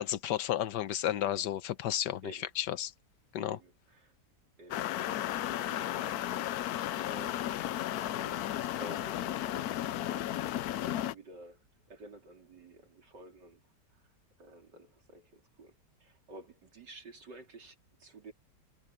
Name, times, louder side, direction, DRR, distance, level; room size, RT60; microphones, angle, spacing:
voice 1, 0.0-2.3 2.6-2.9 3.3-3.6, left 11 dB, 90° left, 1.4 m, -32 dB
voice 2, 3.4-4.2 4.6-6.6 7.0-10.4 10.8-13.6 13.9-14.1 14.4-18.3, right 2 dB, 85° right, 4.1 m, -52 dB
sound 1, 4.7-11.1, left 13 dB, 70° left, 1.1 m, -34 dB
omnidirectional pair, 1.8 m